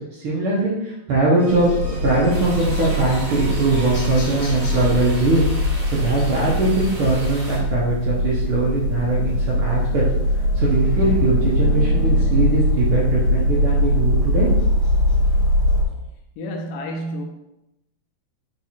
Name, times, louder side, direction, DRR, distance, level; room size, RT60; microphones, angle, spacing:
voice 1, 0.1-10.0 10.5-14.5, right 2 dB, 85° right, 1.1 m, -21 dB
sound 1, 1.4-6.0, equal, 5° left, 0.4 m, -40 dB
sound 2, 1.5-15.8, left 1 dB, 60° left, 2.2 m, -21 dB
sound 3, 2.3-7.6, right 1 dB, 20° right, 1.4 m, -37 dB
voice 2, 16.4-17.2, equal, 75° left, 2.0 m, -29 dB
4.8 x 4.7 x 4.2 m
omnidirectional pair, 4.0 m